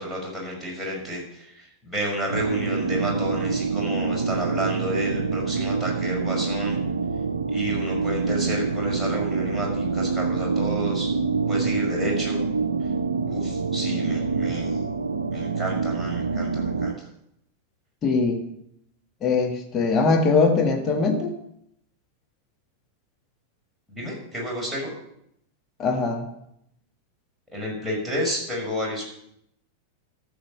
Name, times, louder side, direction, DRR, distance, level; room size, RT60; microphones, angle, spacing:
voice 1, 0.0-6.8 7.5-11.1 11.5-12.4 12.8-12.9 13.3-14.8 15.3-17.1 23.9-24.9 27.5-29.1, equal, ahead, -4 dB, 5.3 m, -31 dB
sound 1, 2.3-16.9, right 4 dB, 75° right, 0.6 m, -26 dB
voice 2, 18.0-18.5 19.2-21.3 25.8-26.3, left 4 dB, 30° left, 3 dB, 1.7 m, -21 dB
13.5 x 7.4 x 6.6 m, 0.76 s
figure-of-eight pair, 90°, 0 cm